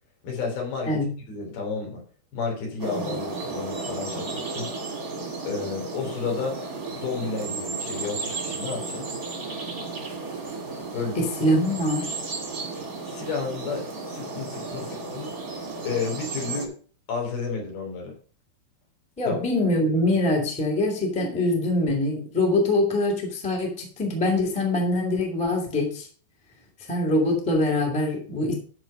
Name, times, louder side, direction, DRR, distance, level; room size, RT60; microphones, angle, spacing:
voice 1, 0.2-2.0 2.3-4.7 5.4-6.6 7.0-9.1 10.9-11.2 13.1-15.4 15.8-16.8 17.1-18.2 19.3-19.4, left 5 dB, 70° left, 5.0 m, -31 dB
voice 2, 2.7-3.2 11.1-12.2 19.2-26.1 26.9-28.5, left 1 dB, 5° left, 1.5 m, -24 dB
sound 1, 2.8-16.7, right 3 dB, 30° right, 1.7 m, -34 dB
12.0 x 4.6 x 5.5 m
omnidirectional pair, 4.6 m